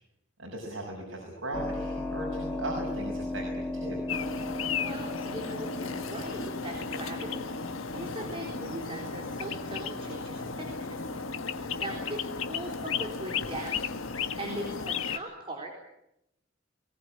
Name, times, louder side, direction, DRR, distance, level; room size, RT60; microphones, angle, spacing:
voice 1, 0.4-4.0, right 1 dB, 75° right, -1 dB, 5.9 m, -37 dB
Keyboard (musical), 1.5-14.0, left 2 dB, 10° left, 2.3 m, -39 dB
sound 1, 4.1-15.2, left 5 dB, 90° left, 1.4 m, -35 dB
voice 2, 4.4-7.5 7.9-11.1 11.5-13.8 14.1-15.8, right 1 dB, 25° right, 1 dB, 3.9 m, -40 dB
22.0 x 19.0 x 9.9 m, 0.82 s
head